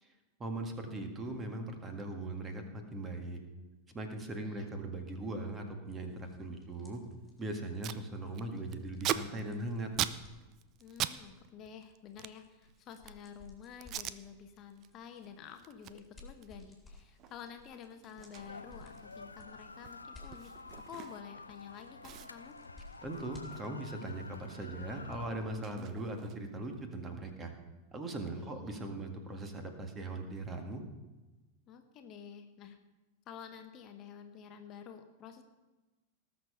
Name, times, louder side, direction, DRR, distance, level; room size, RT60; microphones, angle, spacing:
voice 1, 0.4-3.4 3.9-7.0 7.4-9.9 23.0-27.5 27.9-30.8, right 2 dB, 20° right, 4 dB, 1.9 m, -40 dB
sound 1, 5.8-24.0, left 2 dB, 5° left, 3.9 m, -59 dB
Packing tape duct tape, 7.3-7.4 7.6-8.0 8.3-11.2 11.4-13.3 13.8-14.2 14.6-14.9 15.2-21.4 21.7-21.8 22.0-24.4 24.7-26.6, right 12 dB, 35° right, 0.5 m, -41 dB
voice 2, 10.8-20.5 20.9-22.5 28.3-28.7 31.7-32.8 33.3-35.4, left 8 dB, 35° left, 6 dB, 1.0 m, -50 dB
sound 2, 18.3-25.3, left 3 dB, 80° left, 0.6 m, -49 dB
19.0 x 6.8 x 5.6 m, 1.1 s
figure-of-eight pair, 90°, 0 cm